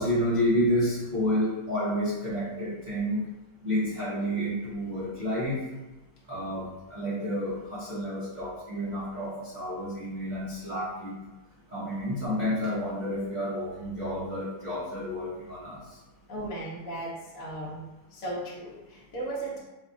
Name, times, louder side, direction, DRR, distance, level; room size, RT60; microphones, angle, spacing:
voice 1, 0.0-3.2 3.6-5.6 6.3-11.1 11.7-15.8, equal, 40° right, -9 dB, 0.6 m, -30 dB
voice 2, 16.3-17.8 18.1-19.6, right 1 dB, 50° left, -7 dB, 1.1 m, -36 dB
4.2 x 2.4 x 3.7 m, 1.1 s
omnidirectional pair, 2.2 m